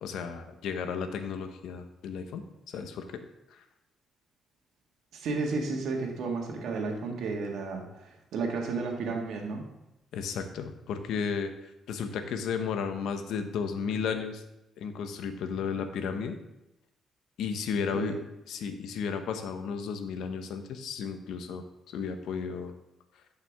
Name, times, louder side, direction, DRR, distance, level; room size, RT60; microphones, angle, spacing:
voice 1, 0.0-3.2 3.5-3.6 10.1-11.5 11.9-14.4 14.8-16.4 17.4-18.2 18.5-22.7, left 6 dB, 80° left, 8 dB, 0.9 m, -33 dB
voice 2, 5.1-9.6 17.9-18.1, right 4 dB, 75° right, 1 dB, 1.8 m, -32 dB
11.0 x 5.7 x 3.5 m, 0.92 s
cardioid pair, 90°, 0 cm